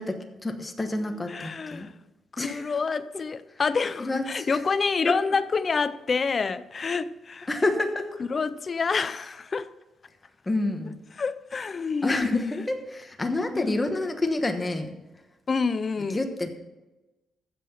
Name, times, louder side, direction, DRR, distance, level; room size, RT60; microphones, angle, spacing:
voice 1, 0.0-1.9 2.4-2.7 4.0-4.6 5.1-5.2 7.5-8.1 10.5-11.0 12.0-14.9 16.1-16.5, left 2 dB, 15° left, 1.2 m, -28 dB
voice 2, 1.3-1.9 2.3-7.5 8.3-9.7 11.2-12.7 13.5-13.8 15.5-16.2, left 5 dB, 30° left, 0.5 m, -28 dB
15.0 x 5.8 x 5.7 m
cardioid pair, 145°, 0 cm